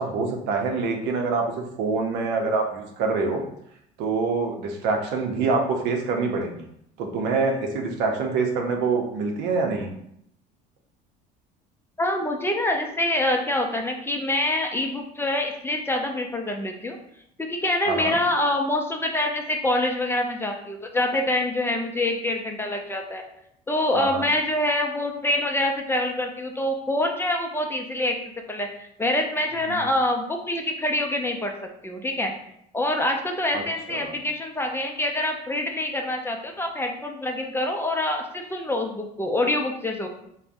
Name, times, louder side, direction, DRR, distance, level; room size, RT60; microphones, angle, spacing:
voice 1, 0.0-3.4 4.0-6.6 7.0-9.9 17.9-18.2 23.9-24.2 29.7-29.9 33.5-34.1, right 4 dB, 75° right, 3 dB, 0.6 m, -25 dB
voice 2, 12.0-17.0 17.4-23.2 23.7-28.2 28.5-31.5 31.8-32.3 32.7-40.1, left 1 dB, 15° left, 3 dB, 0.4 m, -25 dB
3.3 x 2.1 x 2.5 m, 0.74 s
supercardioid pair, 85°, 18 cm